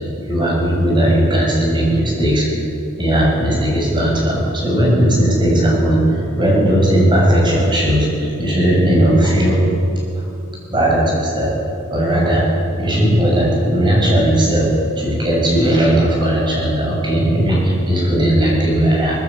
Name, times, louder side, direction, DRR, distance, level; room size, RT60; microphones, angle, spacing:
voice 1, 0.3-2.5 3.0-9.6 10.7-11.6 11.9-12.5 12.8-14.7 15.0-19.2, right 1 dB, 20° right, -3 dB, 7.2 m, -16 dB
22.5 x 19.5 x 8.6 m, 2.7 s
head